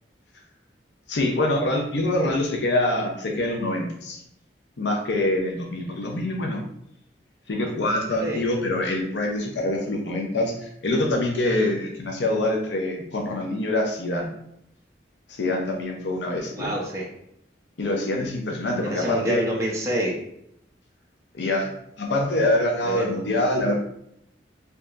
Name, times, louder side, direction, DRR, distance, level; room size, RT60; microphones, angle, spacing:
voice 1, 1.1-4.2 4.8-6.6 7.5-14.3 15.3-16.7 17.8-19.4 21.3-21.7 22.0-23.8, left 1 dB, 80° left, 1 dB, 0.6 m, -25 dB
voice 2, 16.5-17.0 18.8-20.1 22.8-23.1, right 1 dB, 15° right, -4 dB, 0.7 m, -27 dB
4.5 x 2.8 x 2.4 m, 0.74 s
head